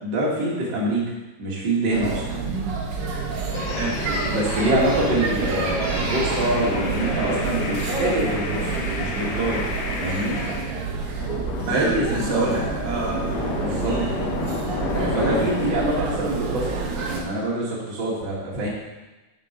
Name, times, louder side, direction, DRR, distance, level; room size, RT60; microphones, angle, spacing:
voice 1, 0.0-1.1 1.4-2.2 4.2-9.7 10.0-10.4 11.6-12.5 13.6-14.0 14.9-16.7 17.1-18.7, right 1 dB, 35° right, -5 dB, 2.1 m, -25 dB
sound 1, 1.9-17.2, right 4 dB, 80° right, 1.3 m, -28 dB
voice 2, 2.4-2.8 3.7-4.0 11.7-13.2 13.8-14.1, right 4 dB, 55° right, -3 dB, 1.0 m, -27 dB
sound 2, 3.5-10.7 11.1-16.0, left 3 dB, 90° left, 1.4 m, -31 dB
7.4 x 6.5 x 5.2 m, 1.1 s
omnidirectional pair, 4.3 m